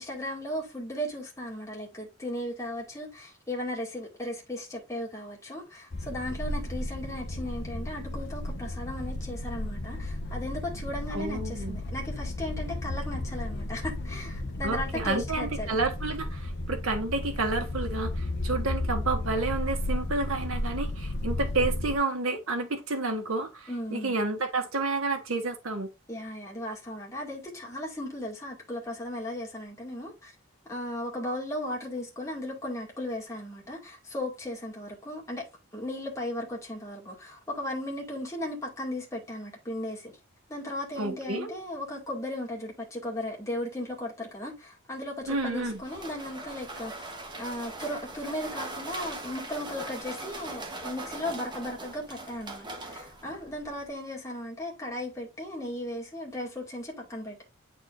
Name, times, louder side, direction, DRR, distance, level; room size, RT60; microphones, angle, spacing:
voice 1, 0.0-15.8 23.7-24.1 26.1-30.3 30.7-35.5 35.7-40.1 40.5-57.4, left 1 dB, 15° left, 2.1 m, -36 dB
sound 1, 5.9-22.0, left 1 dB, 55° left, 0.7 m, -33 dB
voice 2, 11.1-11.8 14.6-25.9 41.0-41.5 45.3-45.8, right 3 dB, 85° right, 1.4 m, -30 dB
sound 2, 45.2-53.9, right 2 dB, 20° right, 1.0 m, -41 dB
9.0 x 4.2 x 2.5 m
head